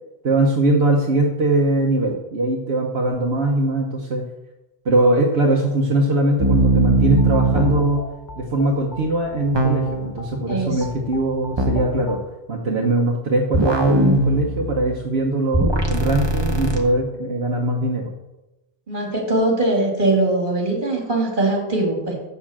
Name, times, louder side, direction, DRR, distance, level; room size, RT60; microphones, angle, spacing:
voice 1, 0.2-4.2 4.8-8.1 8.4-12.2 12.5-18.1, right 2 dB, 80° right, 0 dB, 1.3 m, -21 dB
sound 1, 6.4-7.9 9.5-10.1 11.6-11.9 13.5-15.0 15.5-16.8, right 2 dB, 25° right, 1.1 m, -20 dB
sound 2, 7.1-12.2, left 4 dB, 50° left, 0.9 m, -37 dB
voice 2, 10.5-10.8 18.9-22.1, right 2 dB, 50° right, -1 dB, 3.0 m, -21 dB
8.1 x 7.1 x 7.3 m, 1.0 s
omnidirectional pair, 1.0 m